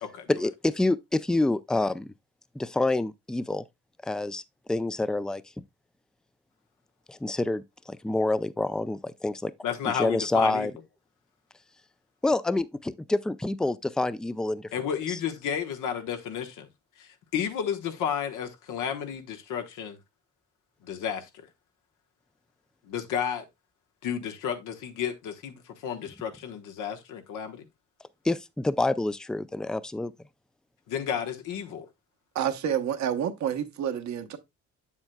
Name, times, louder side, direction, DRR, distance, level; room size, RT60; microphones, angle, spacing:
voice 1, 0.3-2.1 2.5-3.6 4.0-4.4 4.7-5.4 7.1-9.5 9.9-10.7 12.2-14.7 15.1-15.2 28.2-30.1, left 2 dB, ahead, 0.3 m, -27 dB
voice 2, 9.6-10.7 14.7-16.7 17.0-20.0 20.8-21.5 22.8-23.4 24.0-27.6 30.9-31.9, left 8 dB, 85° left, 1.2 m, -32 dB
voice 3, 32.3-34.4, right 9 dB, 65° right, 1.0 m, -29 dB
7.7 x 7.2 x 2.2 m
cardioid pair, 90°, 30 cm